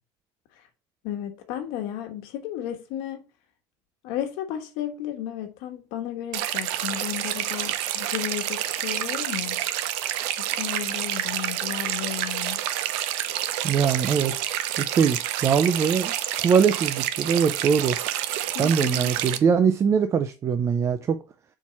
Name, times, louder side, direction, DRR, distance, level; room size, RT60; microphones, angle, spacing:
voice 1, 1.0-3.2 4.0-9.6 10.4-12.6 18.5-19.1, left 11 dB, 75° left, 1.3 m, -33 dB
sound 1, 6.3-19.4, right 12 dB, 80° right, 0.6 m, -28 dB
voice 2, 13.6-14.4 14.8-16.1 16.4-18.0 18.6-21.2, right 6 dB, 30° right, 0.4 m, -22 dB
4.5 x 4.2 x 5.8 m
cardioid pair, 135°, 10 cm